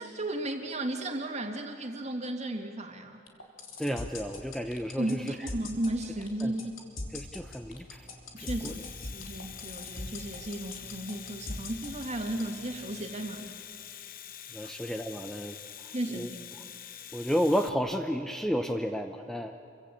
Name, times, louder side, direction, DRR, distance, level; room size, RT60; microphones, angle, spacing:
voice 1, 0.0-3.2 5.0-6.7 8.3-13.5 14.6-14.7 15.9-16.5, right 1 dB, 35° right, 4 dB, 2.3 m, -35 dB
sound 1, 3.3-12.4, left 2 dB, 85° left, 3.6 m, -39 dB
voice 2, 3.8-5.5 6.4-6.5 7.1-8.1 8.4-8.8 14.5-15.6 15.8-16.6 17.1-19.5, equal, ahead, 5 dB, 0.7 m, -32 dB
sound 2, 7.4-13.6, left 1 dB, 30° left, 5.3 m, -56 dB
Domestic sounds home sounds, 8.2-17.7, left 10 dB, 45° left, 0.9 m, -46 dB
28.5 x 24.0 x 8.4 m, 2.6 s
head